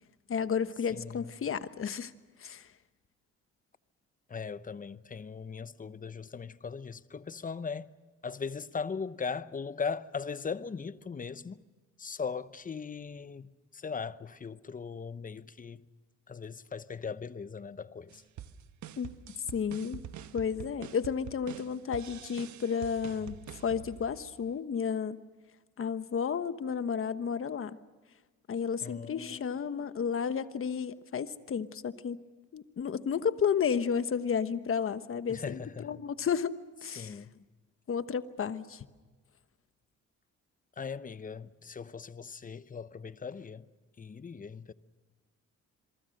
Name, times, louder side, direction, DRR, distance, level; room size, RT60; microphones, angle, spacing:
voice 1, 0.3-2.1 2.4-2.7 19.0-19.1 19.5-20.0 20.3-25.2 25.8-27.8 28.5-32.2 32.5-37.2 37.9-38.9, left 7 dB, 45° left, 1.2 m, -32 dB
voice 2, 0.9-1.3 4.3-7.9 8.2-11.6 12.0-15.9 16.3-18.2 28.8-29.9 35.3-36.0 37.0-37.3 40.8-43.7 44.0-44.7, left 5 dB, 25° left, 0.8 m, -39 dB
sound 1, 18.1-24.6, right 10 dB, 70° right, 1.2 m, -46 dB
27.0 x 23.5 x 6.6 m
cardioid pair, 90°, 30 cm